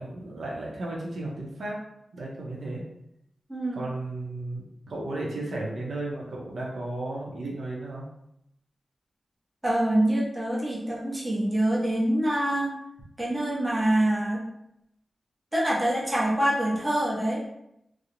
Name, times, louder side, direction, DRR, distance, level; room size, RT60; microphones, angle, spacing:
voice 1, 0.0-1.8 2.1-2.8 3.7-8.1, right 2 dB, 80° right, -3 dB, 0.6 m, -34 dB
voice 2, 3.5-3.8 9.6-12.7 13.2-14.4 15.5-17.4, right 1 dB, 15° right, -6 dB, 0.7 m, -25 dB
2.4 x 2.0 x 2.9 m, 0.79 s
wide cardioid pair, 145°, 0 cm